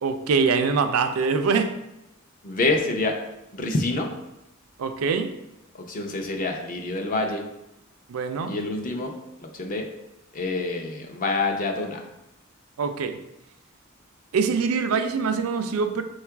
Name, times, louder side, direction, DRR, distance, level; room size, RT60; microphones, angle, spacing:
voice 1, 0.0-1.7 4.8-5.3 8.1-8.5 12.8-13.2 14.3-16.0, right 5 dB, 90° right, 8 dB, 0.4 m, -24 dB
voice 2, 2.4-3.2 3.5-4.1 5.8-7.4 8.5-9.1 9.4-9.9 10.3-12.0, left 2 dB, 40° left, 3 dB, 0.5 m, -27 dB
3.7 x 2.4 x 4.5 m, 0.89 s
head